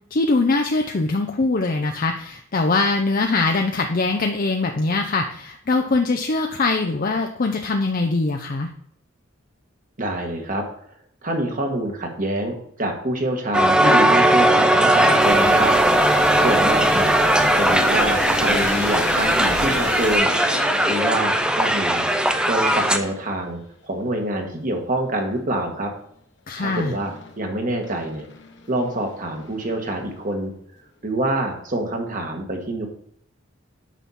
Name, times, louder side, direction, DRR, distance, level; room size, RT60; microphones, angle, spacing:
voice 1, 0.1-8.7 26.5-26.9, left 3 dB, 45° left, 4 dB, 0.6 m, -22 dB
voice 2, 10.0-10.6 11.2-15.7 16.4-17.1 17.5-20.3 20.9-22.1 22.5-25.9 26.6-28.3 28.7-30.5 31.0-32.9, right 1 dB, 40° right, 2 dB, 1.6 m, -26 dB
Crowd, 13.5-23.0, right 1 dB, 5° right, 0.5 m, -18 dB
sound 1, 14.1-21.7 22.6-23.4 26.6-27.4 27.8-30.2, left 3 dB, 60° left, 1.2 m, -34 dB
sound 2, 15.2-20.2, right 1 dB, 65° right, 4.0 m, -36 dB
9.0 x 6.1 x 4.2 m, 0.67 s
head